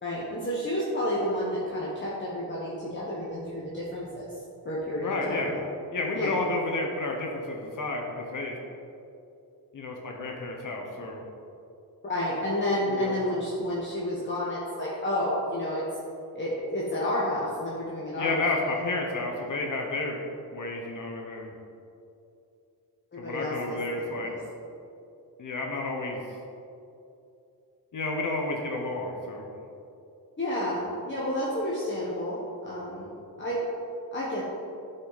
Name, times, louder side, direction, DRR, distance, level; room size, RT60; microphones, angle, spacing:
voice 1, 0.0-4.4 4.6-5.6 6.1-6.3 12.0-15.8 16.3-18.8 23.2-23.8 24.0-24.3 30.4-33.1 33.4-33.6 34.1-34.5, left 1 dB, 30° left, -7 dB, 1.3 m, -30 dB
voice 2, 5.0-5.5 5.9-8.6 9.7-11.2 12.9-13.1 18.2-20.3 20.5-21.5 23.2-24.3 25.4-26.2 27.9-29.5, left 2 dB, 55° left, 0 dB, 1.0 m, -31 dB
11.5 x 5.6 x 4.1 m, 2.7 s
wide cardioid pair, 150°, 38 cm